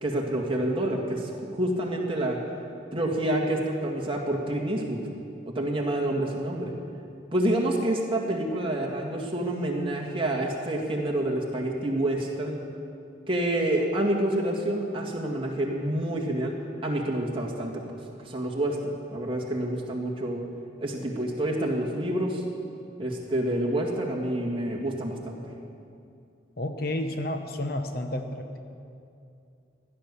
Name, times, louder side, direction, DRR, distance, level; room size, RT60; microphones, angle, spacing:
voice 1, 0.0-2.4 2.9-5.0 5.5-6.7 7.3-12.6 13.3-16.5 16.8-17.8 18.2-20.4 20.8-22.4 23.0-25.5, right 1 dB, 25° right, -1 dB, 1.8 m, -28 dB
voice 2, 26.6-28.6, left 1 dB, 50° left, 6 dB, 0.9 m, -31 dB
16.0 x 11.0 x 6.9 m, 2.6 s
head